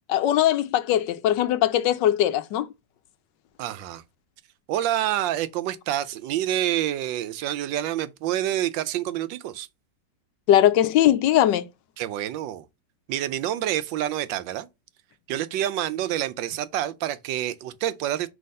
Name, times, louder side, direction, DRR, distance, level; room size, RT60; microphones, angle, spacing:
voice 1, 0.1-2.7 10.5-11.7, left 12 dB, 80° left, 1.3 m, -20 dB
voice 2, 3.6-4.0 4.7-9.7 12.0-12.6 13.1-14.7 15.3-18.3, right 12 dB, 90° right, 1.3 m, -27 dB
5.6 x 3.4 x 5.3 m
omnidirectional pair, 1.9 m